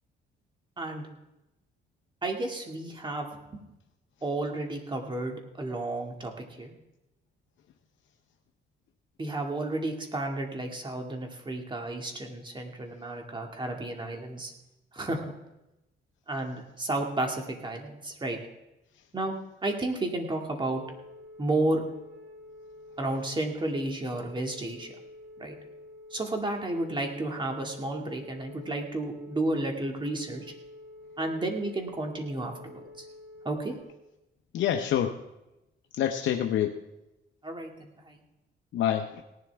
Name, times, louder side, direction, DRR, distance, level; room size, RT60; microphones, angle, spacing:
voice 1, 0.8-1.1 2.2-3.6 4.2-6.7 9.2-14.5 14.9-15.3 16.3-18.4 19.1-19.4 19.6-20.8 21.4-21.8 23.0-24.9 25.4-25.6 26.1-30.5 31.2-33.1 33.4-33.7 37.4-38.2, right 2 dB, 25° right, 2 dB, 2.1 m, -32 dB
Telephone, 20.6-33.8, left 1 dB, 50° right, 2.6 m, -48 dB
voice 2, 34.5-35.2 36.0-36.8 38.7-39.2, left 10 dB, 70° left, 5 dB, 0.8 m, -26 dB
18.0 x 11.0 x 3.5 m, 0.95 s
cardioid pair, 90°, 20 cm